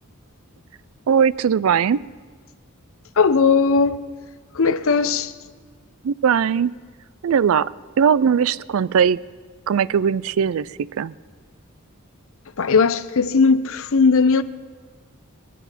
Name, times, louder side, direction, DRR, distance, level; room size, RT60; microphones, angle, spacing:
voice 1, 1.1-2.0 6.0-6.7 7.2-7.7 8.0-9.2 9.7-11.1, right 7 dB, 70° right, 0.4 m, -19 dB
voice 2, 3.2-4.0 4.5-5.3 12.6-14.4, left 4 dB, 65° left, 0.7 m, -18 dB
21.0 x 11.5 x 5.9 m
head